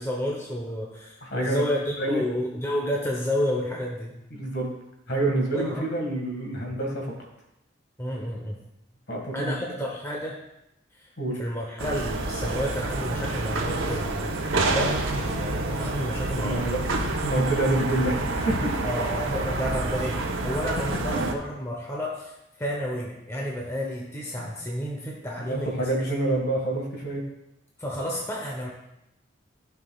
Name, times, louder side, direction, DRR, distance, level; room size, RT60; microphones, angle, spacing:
voice 1, 0.0-4.2 5.5-5.8 8.0-8.6 9.3-10.4 11.0-11.1 11.4-14.3 14.7-16.7 18.8-25.7 27.8-28.7, equal, 15° left, -1 dB, 0.9 m, -30 dB
voice 2, 1.2-1.6 2.0-2.3 4.3-4.7 5.1-7.1 9.1-9.5 11.2-11.4 16.4-16.8 17.2-19.1 24.4-24.5 25.5-27.2, right 1 dB, 55° left, 0 dB, 1.8 m, -27 dB
sound 1, 11.8-21.3, right 2 dB, 85° right, 1.0 m, -28 dB
14.5 x 5.7 x 2.4 m, 0.87 s
head